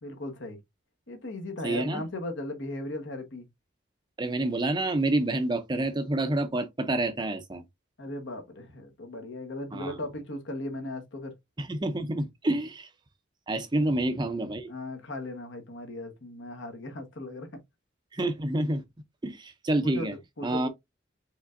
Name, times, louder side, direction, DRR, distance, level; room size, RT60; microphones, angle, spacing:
voice 1, 0.0-0.6 1.1-3.5 8.0-11.3 13.7-13.9 14.7-17.5 19.8-20.7, left 1 dB, 65° left, 1.2 m, -37 dB
voice 2, 1.6-2.0 4.2-7.6 9.7-10.0 11.6-12.9 13.5-14.7 18.1-18.8 19.2-20.1 20.4-20.7, right 2 dB, 20° right, 0.5 m, -28 dB
4.9 x 3.7 x 2.5 m
head